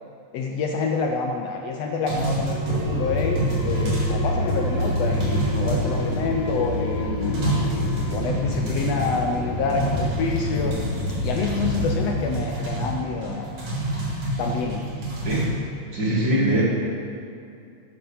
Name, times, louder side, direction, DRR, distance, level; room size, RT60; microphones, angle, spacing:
voice 1, 0.3-7.4 8.1-10.8 11.2-13.5 14.4-14.9, left 4 dB, 75° left, 3 dB, 1.7 m, -27 dB
sound 1, 2.1-4.2 4.5-6.5 6.9-7.0 7.2-9.4 9.7-15.5, right 2 dB, 75° right, 4.3 m, -29 dB
sound 2, 2.4-9.6, left 2 dB, 40° left, 3.4 m, -35 dB
sound 3, 2.6-12.1, left 1 dB, 90° left, 3.4 m, -27 dB
voice 2, 15.9-16.6, right 1 dB, 40° right, -6 dB, 3.0 m, -21 dB
13.5 x 8.2 x 5.6 m, 2.5 s
omnidirectional pair, 3.3 m